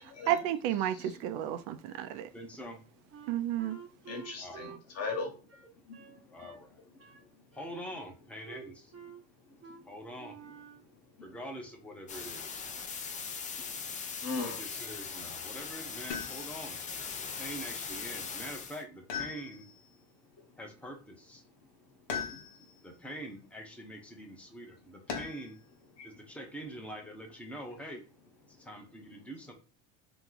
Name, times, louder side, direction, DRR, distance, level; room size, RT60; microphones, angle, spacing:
voice 1, 0.3-2.3 3.3-3.8, right 11 dB, 70° right, 0.5 m, -32 dB
voice 2, 2.3-2.8 4.4-4.7 6.3-6.7 7.6-8.8 9.9-10.3 11.2-12.6 14.4-16.8 17.4-19.6 20.6-21.4 22.8-25.6 26.0-28.0 28.7-29.5, equal, 5° left, 0.7 m, -44 dB
Wind instrument woodwind instrument, 3.1-6.6 7.0-7.3 7.5-8.2 8.5-9.2 9.6-9.8 10.2-10.9, right 7 dB, 30° right, 0.8 m, -50 dB
voice 3, 4.1-5.3 5.9-6.5 6.9-7.0 13.6-14.6 22.1-22.4 26.0-26.1, left 3 dB, 35° left, 1.3 m, -39 dB
sound 1, 12.1-18.8, left 6 dB, 20° left, 0.3 m, -40 dB
sound 2, 16.1-16.7 19.1-19.9 22.1-22.8 25.1-25.6 27.3-27.9, left 7 dB, 65° left, 1.1 m, -40 dB
2.9 x 2.2 x 3.8 m
supercardioid pair, 110°, 44 cm